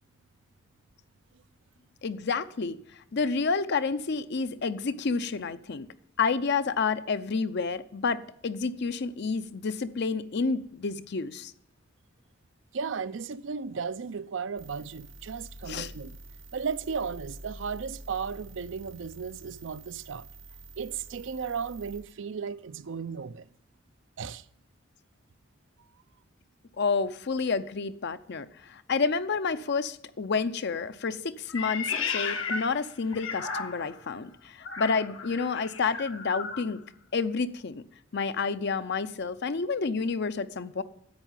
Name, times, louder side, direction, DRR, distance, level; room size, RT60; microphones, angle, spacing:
voice 1, 2.0-2.8 3.1-5.9 6.2-11.5 15.7-15.9 26.8-36.8 37.1-37.8 38.1-40.8, left 4 dB, 60° left, 0.6 m, -29 dB
voice 2, 12.7-16.2 16.5-20.3 20.8-23.5 24.2-24.4, right 6 dB, 70° right, 0.5 m, -35 dB
sound 1, 14.6-22.0, right 1 dB, 90° right, 4.2 m, -47 dB
Meow, 31.5-34.0 34.6-36.7, left 5 dB, 80° left, 1.3 m, -34 dB
10.5 x 8.2 x 9.0 m
head